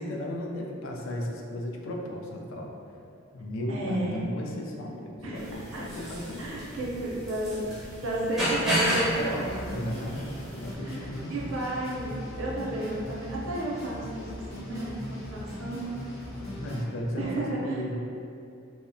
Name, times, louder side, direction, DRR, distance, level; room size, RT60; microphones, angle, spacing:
voice 1, 0.0-2.7 3.3-6.5 9.7-11.5 16.4-18.0, left 1 dB, 65° left, 0 dB, 0.3 m, -35 dB
voice 2, 3.7-4.2 5.2-5.9 6.4-10.1 10.8-14.2 14.5-16.0 17.2-17.8, right 1 dB, 80° right, -4 dB, 0.6 m, -32 dB
sound 1, 5.4-10.7, equal, ahead, 0.4 m, -32 dB
sound 2, 9.0-16.8, equal, 90° left, 0.8 m, -39 dB
2.7 x 2.1 x 2.6 m, 2.6 s
head